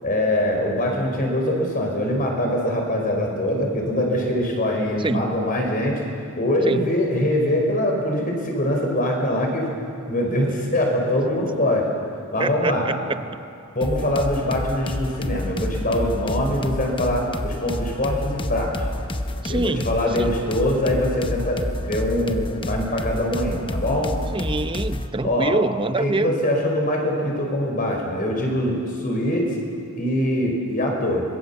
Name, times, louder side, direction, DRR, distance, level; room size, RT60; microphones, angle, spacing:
voice 1, 0.0-6.0 6.4-9.7 10.1-11.9 12.3-12.9 13.7-18.9 19.5-24.1 25.2-25.6 26.0-29.6 30.0-31.2, left 1 dB, 40° left, 1 dB, 5.0 m, -23 dB
voice 2, 5.0-5.3 6.7-6.9 12.4-13.5 19.4-19.9 20.2-20.4 24.3-26.3, right 2 dB, 25° right, 11 dB, 0.7 m, -25 dB
sound 1, 13.8-25.1, left 1 dB, 25° left, 0.8 m, -29 dB
25.0 x 22.5 x 7.2 m, 2.5 s
head